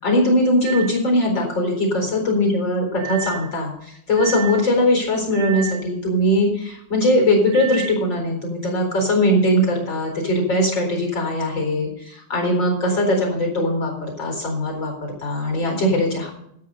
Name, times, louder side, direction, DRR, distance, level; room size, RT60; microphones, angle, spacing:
voice 1, 0.0-16.3, left 1 dB, 25° left, 2 dB, 4.2 m, -20 dB
sound 1, 0.6-1.0 3.0-3.5 4.1-4.7 5.3-5.9 7.5-7.9, right 10 dB, 80° right, 3.2 m, -31 dB
14.0 x 9.1 x 5.4 m, 0.72 s
omnidirectional pair, 5.6 m